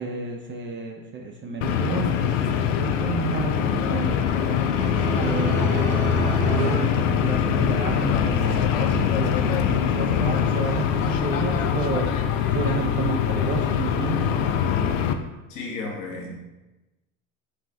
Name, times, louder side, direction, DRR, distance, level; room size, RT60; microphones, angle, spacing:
voice 1, 0.0-4.2 5.1-12.1 12.5-14.4, right 4 dB, 30° right, 1 dB, 0.6 m, -31 dB
sound 1, 1.6-15.1, left 8 dB, 75° left, 0.5 m, -23 dB
sound 2, 3.4-7.9, right 1 dB, 50° right, 1.3 m, -30 dB
voice 2, 15.5-16.4, left 3 dB, 50° left, -1 dB, 1.3 m, -33 dB
5.5 x 2.5 x 3.3 m, 1.0 s
hypercardioid pair, 80°, 39 cm